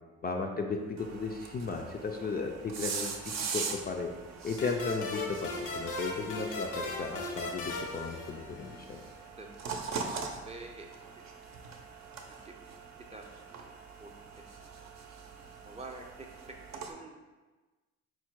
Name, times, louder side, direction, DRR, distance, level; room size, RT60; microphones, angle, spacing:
voice 1, 0.2-4.1 4.4-5.5 5.7-9.0, left 4 dB, 30° left, 2 dB, 0.4 m, -35 dB
sound 1, 1.0-16.9, right 5 dB, 60° right, 0.6 m, -42 dB
sound 2, 4.6-8.9, left 2 dB, 85° left, 0.8 m, -37 dB
voice 2, 10.4-10.9 12.4-12.5 13.1-13.2 14.0-14.1 15.6-16.3 16.8-17.1, right 2 dB, 20° right, 1 dB, 0.5 m, -45 dB
4.5 x 2.1 x 4.5 m, 1.2 s
cardioid pair, 90°, 30 cm